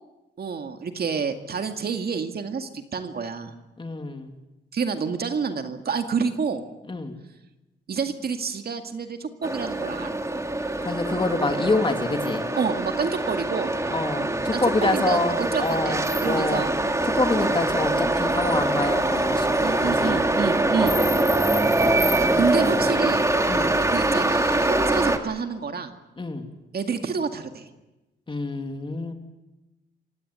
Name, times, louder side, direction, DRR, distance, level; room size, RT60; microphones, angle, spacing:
voice 1, 0.4-3.6 4.7-6.6 7.9-10.2 12.6-13.7 14.5-16.7 19.6-21.0 22.3-23.2 23.9-25.9 26.7-27.7, right 5 dB, 55° right, 6 dB, 2.1 m, -28 dB
voice 2, 3.8-4.3 6.9-7.1 10.8-12.5 13.9-16.6 17.0-20.3 23.5-23.8 26.2-26.5 28.3-29.1, left 3 dB, 25° left, 5 dB, 2.9 m, -27 dB
sound 1, 9.4-25.2, right 2 dB, 15° right, 2.2 m, -23 dB
27.0 x 16.5 x 9.5 m, 1.0 s
cardioid pair, 100°, 19 cm